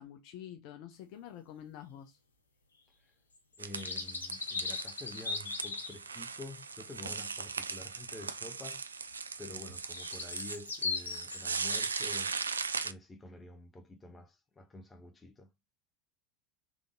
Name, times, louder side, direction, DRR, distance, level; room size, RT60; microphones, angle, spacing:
voice 1, 0.0-2.2, left 10 dB, 55° left, 0.7 m, -48 dB
sound 1, 3.5-6.0 9.5-12.2, left 4 dB, 80° left, 1.2 m, -38 dB
voice 2, 3.6-8.8 9.4-12.3 12.8-15.5, left 2 dB, 20° left, 1.1 m, -48 dB
sound 2, 3.6-12.9, right 5 dB, 85° right, 0.3 m, -39 dB
3.8 x 3.5 x 3.7 m
figure-of-eight pair, 80°, 0 cm